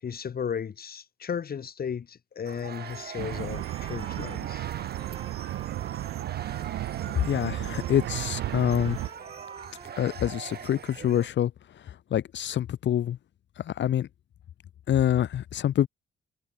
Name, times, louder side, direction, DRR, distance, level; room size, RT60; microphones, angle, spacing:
voice 1, 0.0-4.7, left 7 dB, 50° left, 5.0 m, -35 dB
sound 1, 2.4-11.3, right 8 dB, 55° right, 3.9 m, -43 dB
Trumpet, 2.5-10.8, right 3 dB, 25° right, 3.7 m, -48 dB
sound 2, 3.2-9.1, right 15 dB, 85° right, 1.2 m, -34 dB
voice 2, 7.2-9.0 10.0-11.5 11.9-13.2 13.6-14.1 14.9-15.9, left 11 dB, 65° left, 2.2 m, -26 dB
cardioid pair, 90°, 20 cm